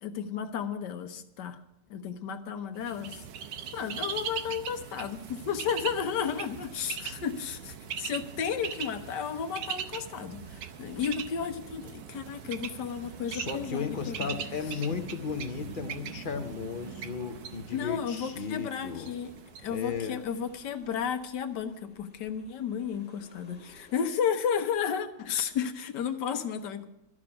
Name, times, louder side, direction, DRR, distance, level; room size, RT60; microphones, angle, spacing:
voice 1, 0.0-1.6 1.9-3.3 3.7-14.4 17.7-19.3 19.6-26.9, left 7 dB, 80° left, 8 dB, 1.5 m, -33 dB
Bird, 2.8-20.6, right 8 dB, 90° right, 1.4 m, -41 dB
sound 1, 6.4-24.1, left 1 dB, 5° left, 2.1 m, -59 dB
voice 2, 13.3-19.1 19.7-20.2, left 6 dB, 50° left, 6 dB, 0.6 m, -35 dB
13.5 x 6.1 x 9.8 m, 0.88 s
omnidirectional pair, 1.8 m